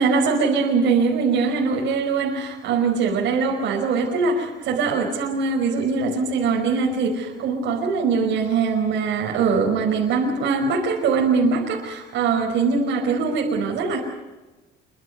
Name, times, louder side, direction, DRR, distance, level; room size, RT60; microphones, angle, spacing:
voice 1, 0.0-14.0, right 5 dB, 70° right, -1 dB, 5.2 m, -22 dB
27.0 x 24.5 x 5.5 m, 1.2 s
cardioid pair, 115°, 20 cm